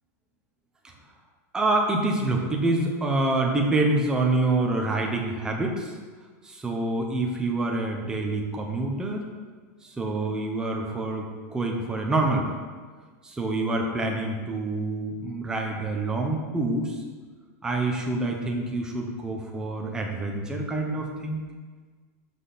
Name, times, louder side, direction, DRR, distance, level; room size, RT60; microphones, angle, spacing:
voice 1, 1.5-5.9 6.4-9.3 10.0-12.5 13.2-16.9 17.6-21.4, right 2 dB, 10° right, 0 dB, 1.0 m, -26 dB
12.0 x 5.8 x 4.2 m, 1.5 s
supercardioid pair, 165°, 9 cm